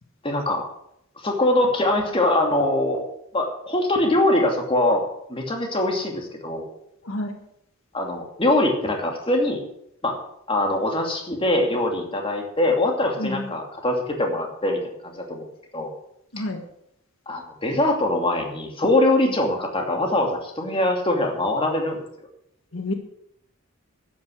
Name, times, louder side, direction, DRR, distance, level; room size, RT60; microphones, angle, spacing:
voice 1, 0.2-0.7 1.2-3.1 3.3-5.0 5.3-6.7 7.9-9.6 10.0-10.2 10.5-15.4 15.7-15.9 17.3-22.1, left 1 dB, 25° left, 2 dB, 2.5 m, -23 dB
voice 2, 7.0-7.4 13.2-13.5 16.3-16.6 22.7-22.9, left 1 dB, 70° left, 5 dB, 1.5 m, -29 dB
11.5 x 9.5 x 6.4 m, 0.75 s
head